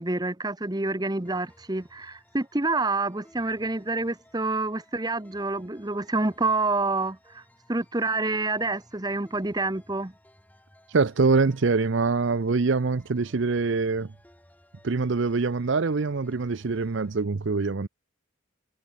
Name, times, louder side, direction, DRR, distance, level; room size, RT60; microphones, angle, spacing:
voice 1, 0.0-7.4 7.7-10.1, right 3 dB, 20° right, 1.0 m, -28 dB
sound 1, 1.2-17.2, left 1 dB, 5° left, 7.6 m, -59 dB
voice 2, 10.9-14.1 14.8-17.9, right 4 dB, 60° right, 0.6 m, -24 dB
head